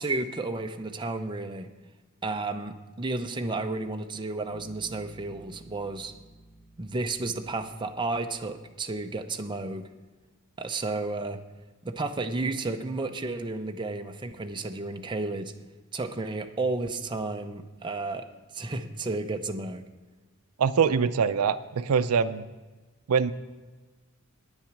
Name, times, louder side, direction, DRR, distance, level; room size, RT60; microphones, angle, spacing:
voice 1, 0.0-1.7 2.2-6.1 6.8-9.9 10.6-11.4 11.8-15.5 15.9-18.3 18.5-19.8, right 3 dB, 20° right, 5 dB, 0.6 m, -32 dB
Bass guitar, 4.5-8.2, right 2 dB, 15° left, 4.1 m, -52 dB
voice 2, 20.6-22.4 23.1-23.3, right 6 dB, 85° right, 13 dB, 0.4 m, -24 dB
9.9 x 8.8 x 6.0 m, 1.3 s
head